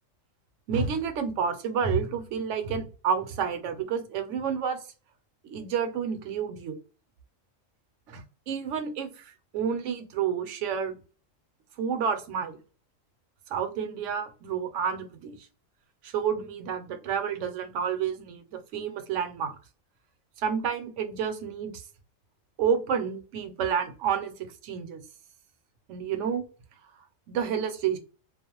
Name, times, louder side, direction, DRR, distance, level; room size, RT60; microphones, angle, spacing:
voice 1, 0.7-4.8 5.5-6.8 8.1-11.0 11.8-12.6 13.5-15.4 16.0-18.4 18.7-19.5 20.4-21.8 22.6-24.3 24.6-25.0 25.9-26.4 27.3-28.0, right 7 dB, 70° right, 7 dB, 0.9 m, -29 dB
2.3 x 2.1 x 2.9 m, 0.37 s
omnidirectional pair, 1.3 m